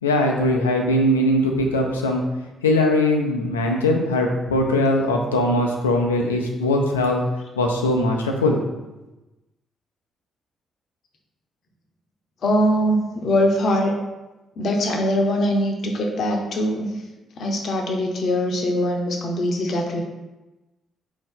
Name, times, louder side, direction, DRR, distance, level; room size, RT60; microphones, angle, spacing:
voice 1, 0.0-2.2 2.6-7.2 7.6-8.6, left 1 dB, 85° left, 2 dB, 0.4 m, -20 dB
voice 2, 12.4-13.9 14.6-16.9 17.4-20.0, equal, 55° left, 2 dB, 0.7 m, -22 dB
4.1 x 2.7 x 3.7 m, 1.1 s
figure-of-eight pair, 45°, 0 cm